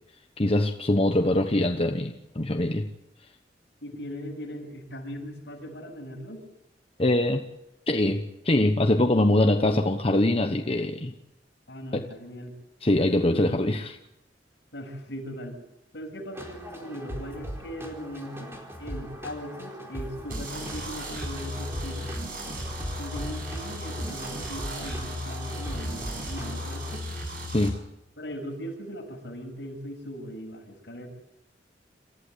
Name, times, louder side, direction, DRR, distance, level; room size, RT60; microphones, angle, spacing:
voice 1, 0.4-2.9 7.0-7.4 7.9-11.1 11.9-12.1 12.8-13.9 27.5-27.8, left 1 dB, 35° left, 4 dB, 1.1 m, -23 dB
voice 2, 3.8-6.5 11.7-12.6 13.3-13.6 14.7-15.6 15.9-22.1 23.0-27.1 28.2-31.1, equal, 70° left, 1 dB, 7.4 m, -39 dB
sound 1, 16.3-27.0, equal, 15° right, 4.3 m, -40 dB
sound 2, 20.3-27.7, equal, 50° right, 7.6 m, -35 dB
28.0 x 15.0 x 8.3 m, 0.86 s
head